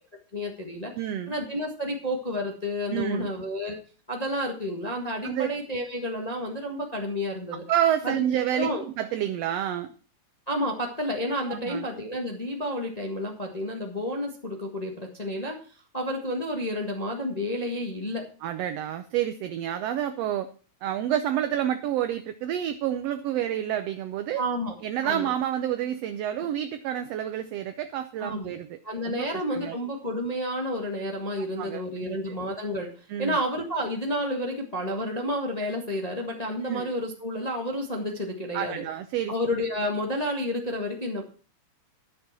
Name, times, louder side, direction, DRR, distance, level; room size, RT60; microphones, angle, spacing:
voice 1, 0.3-0.9 1.3-3.8 4.1-7.6 8.0-8.2 8.5-8.8 10.5-15.6 15.9-18.2 24.4-24.7 25.0-25.3 28.2-28.5 28.8-32.9 33.2-38.8 39.3-41.2, equal, 20° left, 1 dB, 1.2 m, -30 dB
voice 2, 0.9-1.3 2.9-3.3 5.2-5.5 7.7-8.7 9.0-9.9 11.5-11.9 18.4-20.5 20.8-24.4 24.8-28.8 29.0-29.8 31.4-32.4 33.1-33.4 36.6-36.9 38.5-39.3, right 11 dB, 70° right, 9 dB, 1.7 m, -29 dB
11.0 x 7.1 x 6.0 m, 0.38 s
omnidirectional pair, 3.3 m